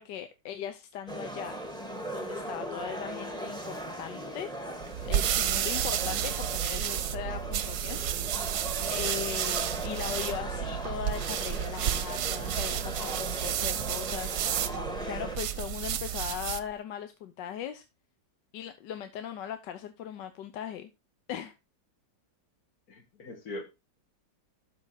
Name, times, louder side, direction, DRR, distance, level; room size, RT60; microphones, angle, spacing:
voice 1, 0.0-1.6 2.1-4.5 5.0-8.5 8.9-14.5 15.0-17.8 18.5-20.9 21.3-21.5, left 9 dB, 75° left, 1.4 m, -39 dB
sound 1, 1.1-15.4, right 1 dB, 5° left, 1.2 m, -39 dB
sound 2, 4.8-16.7, right 10 dB, 65° right, 1.2 m, -31 dB
voice 2, 22.9-23.6, left 1 dB, 55° left, 2.3 m, -41 dB
12.5 x 4.9 x 3.9 m
omnidirectional pair, 2.0 m